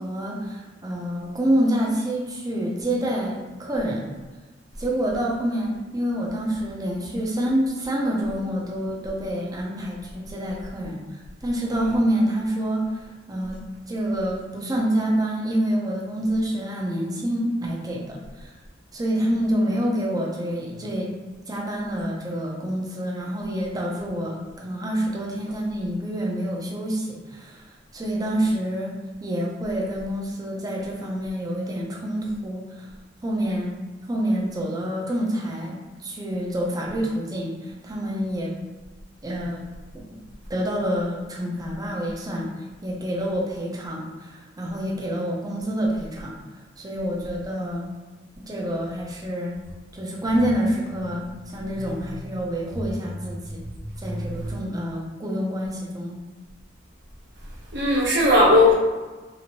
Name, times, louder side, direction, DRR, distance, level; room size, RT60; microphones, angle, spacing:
voice 1, 0.0-4.0 4.8-13.6 13.9-18.5 18.9-21.1 21.5-27.7 27.9-28.9 29.2-32.9 33.2-33.7 34.1-38.6 39.2-39.6 40.5-42.5 42.8-46.3 46.8-47.9 48.5-49.5 49.9-53.6 54.0-56.2, equal, 20° right, -2 dB, 0.5 m, -27 dB
voice 2, 57.7-58.7, left 1 dB, 65° right, -4 dB, 0.9 m, -18 dB
2.9 x 2.6 x 2.9 m, 1.3 s
head